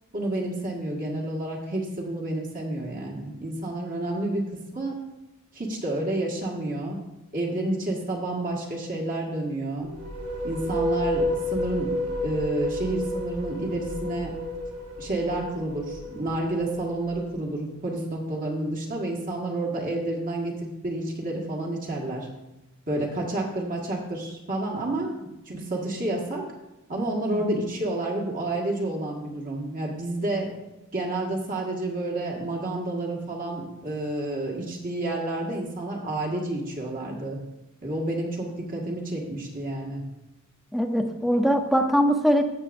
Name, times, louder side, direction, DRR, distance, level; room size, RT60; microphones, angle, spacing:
voice 1, 0.1-4.4 4.7-5.0 5.5-7.0 7.3-9.9 10.4-12.0 12.2-14.3 15.0-22.3 22.9-25.1 25.4-26.4 26.9-30.5 30.9-37.4 37.8-40.0, right 1 dB, 40° right, -1 dB, 1.6 m, -29 dB
sound 1, 9.8-17.4, left 1 dB, 85° right, 1.7 m, -31 dB
voice 2, 40.7-42.4, equal, ahead, 4 dB, 0.7 m, -22 dB
14.5 x 7.4 x 2.6 m, 0.96 s
head